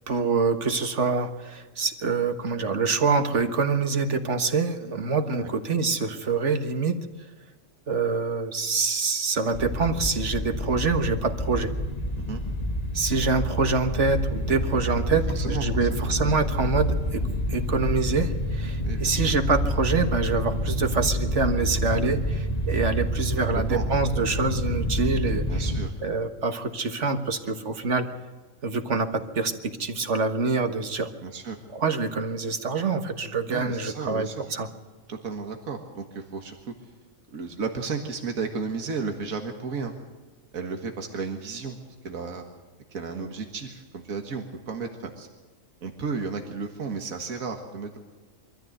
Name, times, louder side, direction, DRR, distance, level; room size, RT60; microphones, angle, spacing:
voice 1, 0.1-6.9 7.9-11.7 12.9-17.2 17.5-25.4 26.0-28.1 28.6-29.5 29.8-31.1 31.7-34.7, right 4 dB, 60° right, 7 dB, 1.7 m, -25 dB
sound 1, 9.5-25.9, equal, 30° left, 1.5 m, -28 dB
voice 2, 15.1-16.2 18.8-19.3 23.7-23.9 25.5-25.9 31.2-31.6 33.5-34.4 35.1-36.7 37.3-39.9 40.5-41.8 42.0-42.4 42.9-45.3 45.8-48.0, right 5 dB, 80° right, 4 dB, 2.0 m, -33 dB
23.5 x 14.0 x 8.0 m, 1.3 s
omnidirectional pair, 1.4 m